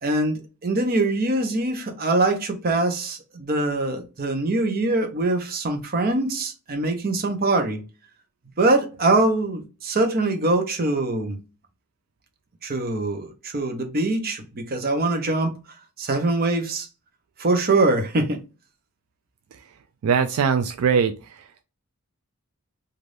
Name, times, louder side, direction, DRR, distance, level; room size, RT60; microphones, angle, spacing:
voice 1, 0.0-7.8 8.6-11.4 12.6-15.5 16.0-16.9 17.4-18.4, right 2 dB, 45° right, 0.7 m, -23 dB
voice 2, 20.0-21.1, right 6 dB, 75° right, 0.4 m, -20 dB
3.2 x 2.5 x 2.5 m
head